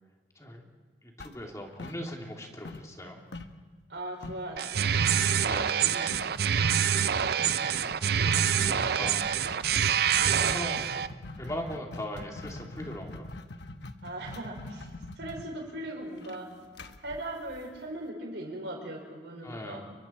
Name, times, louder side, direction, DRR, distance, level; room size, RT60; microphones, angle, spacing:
voice 1, 1.0-3.2 5.4-6.2 7.4-9.3 10.2-10.9 11.4-13.3 19.4-19.9, equal, 20° left, 1 dB, 2.9 m, -40 dB
sound 1, 1.2-2.4 2.6-4.5 5.2-5.5 5.8-5.9 6.1-6.5 7.2-18.0, left 2 dB, 70° left, 1.1 m, -43 dB
voice 2, 3.9-5.4 14.0-16.5 17.0-19.8, right 1 dB, 75° right, 1 dB, 5.4 m, -39 dB
sound 2, 4.6-11.1, right 8 dB, 60° right, 0.6 m, -26 dB
29.5 x 23.5 x 4.5 m, 1.5 s
head